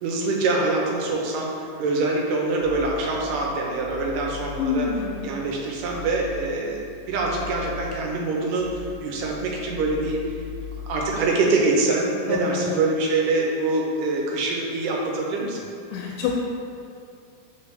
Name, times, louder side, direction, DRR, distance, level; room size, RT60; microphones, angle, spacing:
voice 1, 0.0-1.5 1.8-4.9 5.2-6.8 7.1-10.4 10.9-15.6, right 3 dB, 80° right, -1 dB, 2.4 m, -24 dB
sound 1, 2.6-11.3, left 6 dB, 55° left, 1.8 m, -40 dB
voice 2, 4.6-5.4 12.3-12.8 15.9-16.4, left 6 dB, 90° left, 0 dB, 2.2 m, -27 dB
6.8 x 4.9 x 3.3 m, 2.4 s
omnidirectional pair, 3.9 m